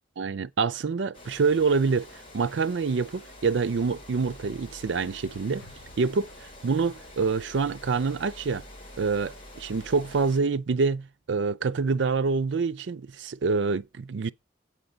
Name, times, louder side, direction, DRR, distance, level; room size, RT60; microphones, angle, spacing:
voice 1, 0.2-2.1 2.3-5.7 6.0-8.6 9.0-14.3, right 4 dB, 70° right, 0.5 m, -26 dB
Water, 1.1-10.4, left 1 dB, 30° left, 3.5 m, -47 dB
sound 1, 5.6-10.1 10.4-10.5, left 1 dB, 70° left, 4.0 m, -58 dB
8.6 x 5.0 x 5.5 m
head